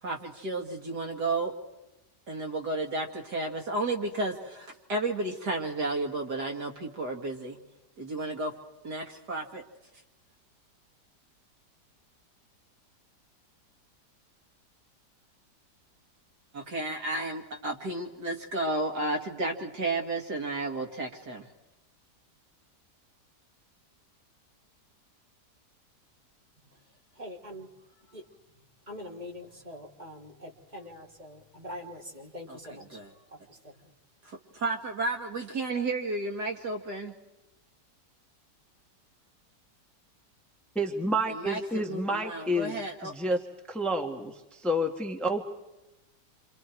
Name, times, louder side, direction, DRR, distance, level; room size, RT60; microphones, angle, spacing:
voice 1, 0.0-1.5 2.3-7.6 8.0-8.5 8.8-9.6 16.5-21.5 32.5-32.6 32.9-33.1 34.2-37.1 41.3-43.1, right 2 dB, 70° right, 3 dB, 2.9 m, -32 dB
voice 2, 26.6-33.9, left 1 dB, 25° right, -2 dB, 4.1 m, -45 dB
voice 3, 40.7-43.4 43.7-45.4, equal, ahead, 2 dB, 1.7 m, -29 dB
28.5 x 27.0 x 4.6 m, 0.99 s
omnidirectional pair, 1.8 m